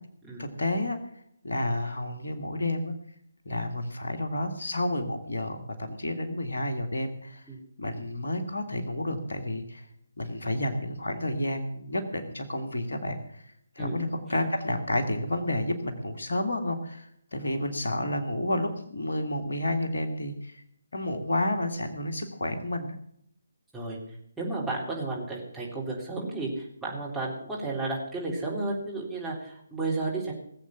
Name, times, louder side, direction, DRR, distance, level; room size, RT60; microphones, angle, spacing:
voice 1, 0.4-1.0 1.4-2.9 3.5-7.5 7.8-9.9 10.2-20.6 20.9-23.0, left 1 dB, 60° left, 6 dB, 2.0 m, -30 dB
voice 2, 24.4-30.3, right 2 dB, ahead, -7 dB, 3.7 m, -32 dB
19.0 x 8.0 x 7.2 m, 0.70 s
figure-of-eight pair, 145°, 0 cm